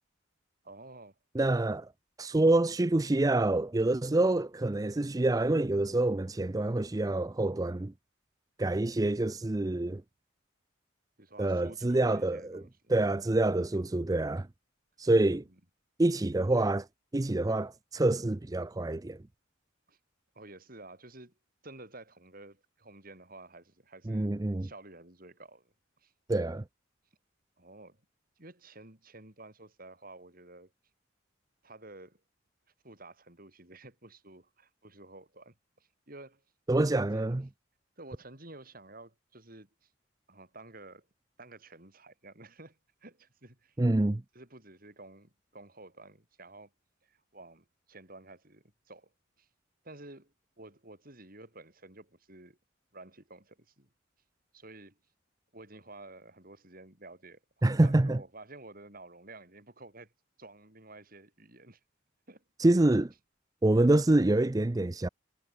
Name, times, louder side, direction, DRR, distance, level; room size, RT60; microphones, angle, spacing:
voice 1, 0.6-1.4 11.2-13.0 15.3-15.6 19.9-20.0 20.4-21.3 21.6-26.1 27.6-28.0 28.4-30.7 31.6-32.2 32.8-36.4 36.8-37.4 38.0-39.9 40.3-41.1 41.4-43.8 44.3-46.7 47.0-49.1 49.4-49.5 49.8-52.6 52.9-53.9 54.5-55.0 55.5-57.4 57.6-60.1 60.4-61.8 62.3-62.4, right 2 dB, 45° right, 5.3 m, -51 dB
voice 2, 1.3-1.9 2.2-7.9 8.6-10.0 11.4-12.6 12.9-14.5 15.0-15.4 16.0-16.9 17.1-19.2 24.1-24.7 26.3-26.6 36.7-37.4 43.8-44.2 57.6-58.2 62.6-63.1 63.6-65.1, right 2 dB, 20° right, 0.5 m, -26 dB
head